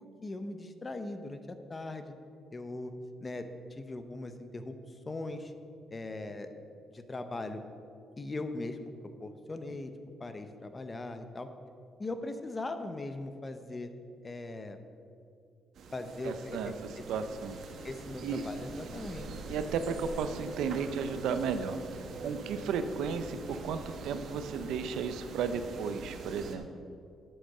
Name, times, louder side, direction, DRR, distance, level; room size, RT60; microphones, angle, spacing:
voice 1, 0.0-2.2 2.5-2.9 3.2-4.7 5.1-5.5 5.9-6.5 6.9-7.6 8.2-8.9 9.2-9.9 10.2-11.5 12.0-13.9 14.2-14.8 15.9-17.0 17.8-19.3 22.2-22.5, left 2 dB, 20° left, 9 dB, 0.7 m, -40 dB
sound 1, 15.8-26.6, right 3 dB, 60° right, 1.1 m, -44 dB
voice 2, 16.2-16.7 17.1-17.6 18.2-18.5 19.5-21.8 22.2-26.7, right 6 dB, 90° right, 10 dB, 0.6 m, -34 dB
8.4 x 7.9 x 6.5 m, 2.4 s
cardioid pair, 150°, 0 cm